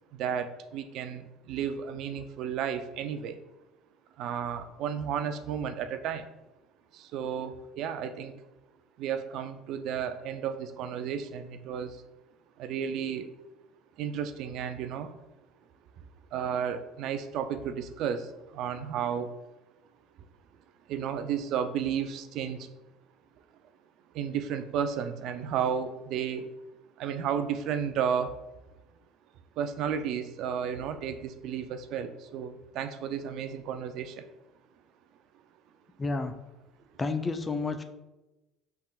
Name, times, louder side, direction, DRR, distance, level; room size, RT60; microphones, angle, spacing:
voice 1, 0.1-3.4 4.2-6.3 6.9-8.3 9.0-11.9 12.6-13.3 14.0-15.1 16.3-18.3 18.5-19.3 20.9-22.7 24.1-26.5 27.0-28.3 29.6-34.2, right 8 dB, 65° right, 9 dB, 0.3 m, -33 dB
voice 2, 36.0-36.3 37.0-37.8, left 3 dB, 20° left, 8 dB, 0.4 m, -30 dB
5.5 x 3.5 x 2.3 m, 1.0 s
supercardioid pair, 95°, 0 cm